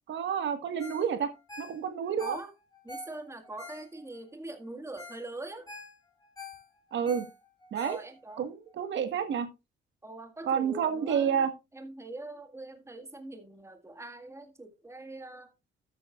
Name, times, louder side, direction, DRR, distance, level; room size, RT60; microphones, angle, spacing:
voice 1, 0.1-1.3 1.6-2.4 6.9-7.2 7.7-8.0 8.4-9.5 10.5-11.5, right 7 dB, 70° right, 1.6 m, -29 dB
Ringtone, 0.8-1.1 1.3-4.2 4.7-4.8 5.0-5.2 5.5-8.4 8.8-8.9, left 2 dB, 15° left, 5.2 m, -46 dB
voice 2, 2.2-2.5 2.8-5.7 7.8-8.5 10.0-11.5 11.7-15.5, right 2 dB, 15° right, 1.9 m, -43 dB
12.5 x 8.7 x 2.4 m
cardioid pair, 90°, 20 cm